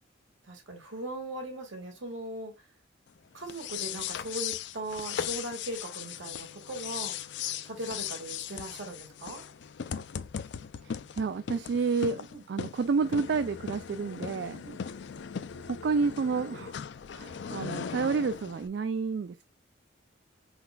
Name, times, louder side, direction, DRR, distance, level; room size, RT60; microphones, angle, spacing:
voice 1, 0.5-2.5 3.3-7.2 7.6-9.4 12.3-12.4 14.6-14.8, right 1 dB, 75° right, 1.7 m, -39 dB
sound 1, 3.4-18.7, left 8 dB, 65° left, 0.4 m, -38 dB
voice 2, 10.8-14.6 15.7-16.7 17.1-19.4, right 4 dB, 60° right, 0.3 m, -30 dB
4.3 x 4.0 x 2.3 m
head